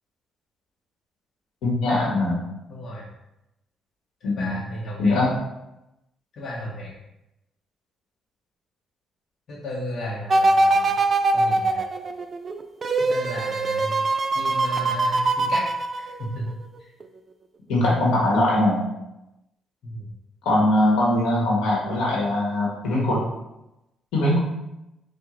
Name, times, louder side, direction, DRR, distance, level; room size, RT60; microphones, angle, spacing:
voice 1, 1.6-2.4 4.2-4.5 5.0-5.3 17.7-18.8 20.4-23.2 24.1-24.4, left 1 dB, 85° left, -3 dB, 1.4 m, -21 dB
voice 2, 2.7-3.1 4.2-5.2 6.3-6.9 9.5-10.9 11.3-11.8 13.0-13.9 14.3-15.6 16.0-16.5 19.8-20.1, left 1 dB, 60° left, -5 dB, 1.1 m, -34 dB
sound 1, 10.3-16.5 17.0-17.1, right 2 dB, 40° right, 0.3 m, -22 dB
4.6 x 2.5 x 3.8 m, 0.90 s
cardioid pair, 90°, 0 cm